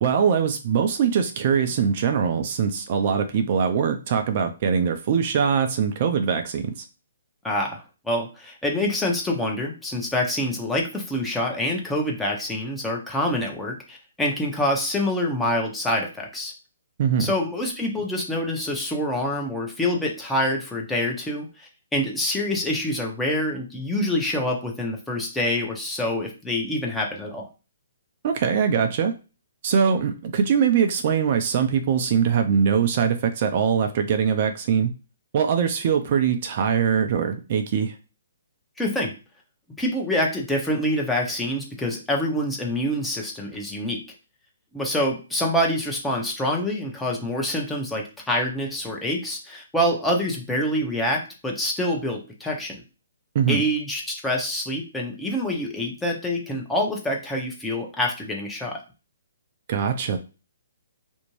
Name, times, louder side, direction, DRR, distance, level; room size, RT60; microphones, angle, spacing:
voice 1, 0.0-6.8 17.0-17.3 28.2-29.1 29.6-34.9 35.3-37.9 53.3-53.6 59.7-60.2, right 7 dB, 45° right, 6 dB, 0.4 m, -22 dB
voice 2, 7.4-16.5 17.2-27.5 38.8-39.2 39.8-44.0 44.7-52.8 53.5-58.8, left 1 dB, 5° left, -1 dB, 0.7 m, -26 dB
2.5 x 2.1 x 3.1 m, 0.32 s
hypercardioid pair, 135°, 0 cm